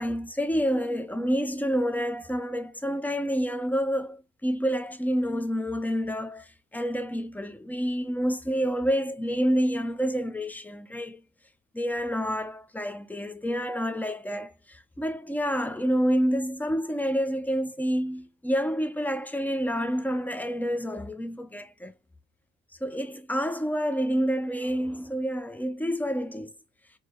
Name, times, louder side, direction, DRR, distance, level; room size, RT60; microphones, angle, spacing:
voice 1, 0.0-6.5 6.7-11.2 11.7-21.9 22.8-26.5, equal, 5° left, 0.7 m, -28 dB
4.5 x 3.0 x 2.4 m
cardioid pair, 90°, 30 cm